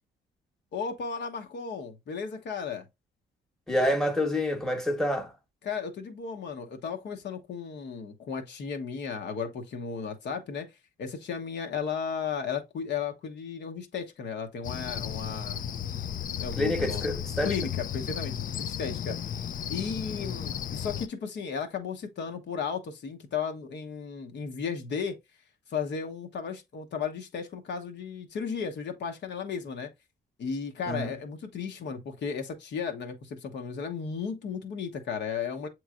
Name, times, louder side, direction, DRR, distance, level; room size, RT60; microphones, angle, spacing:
voice 1, 0.7-2.9 5.6-10.7 11.0-15.6 15.9-16.1 16.4-17.1 17.4-19.4 19.7-25.2 25.7-29.9 30.4-35.7, left 6 dB, 60° left, 0.9 m, -35 dB
voice 2, 3.7-5.3 16.6-17.5 30.9-31.1, left 1 dB, ahead, 1.1 m, -27 dB
Cricket, 14.6-21.1, left 9 dB, 45° left, 0.4 m, -34 dB
7.2 x 3.1 x 2.4 m
cardioid pair, 90°, 20 cm